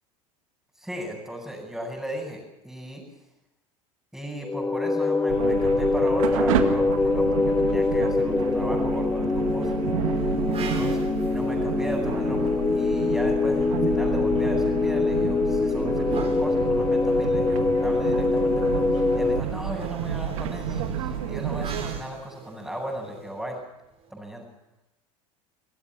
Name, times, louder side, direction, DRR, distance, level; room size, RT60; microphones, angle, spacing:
voice 1, 0.8-3.0 4.1-9.7 10.6-11.0 11.3-23.6 24.1-24.4, equal, 5° right, -5 dB, 7.5 m, -36 dB
sound 1, 4.4-19.4, left 3 dB, 15° left, 0.8 m, -24 dB
sound 2, 5.3-22.0, right 9 dB, 75° right, 2.0 m, -30 dB
sound 3, 10.1-13.3 15.1-24.1, right 5 dB, 35° right, 4.9 m, -44 dB
26.5 x 16.0 x 7.5 m, 0.93 s
hypercardioid pair, 80°, 17 cm